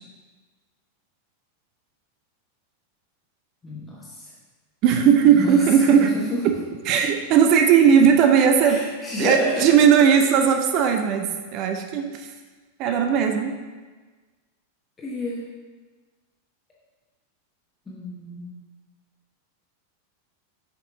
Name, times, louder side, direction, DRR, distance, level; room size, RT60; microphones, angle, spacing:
voice 1, 3.6-4.3 5.2-5.6 6.0-6.4 8.7-9.7 12.8-12.9 15.0-15.4 17.9-18.6, left 1 dB, 15° left, -5 dB, 1.0 m, -30 dB
voice 2, 4.8-6.1 6.4-6.5 6.9-8.8 9.2-12.3 12.8-13.5, right 7 dB, 40° right, 5 dB, 0.5 m, -17 dB
6.5 x 5.0 x 3.7 m, 1.3 s
figure-of-eight pair, 90°, 0 cm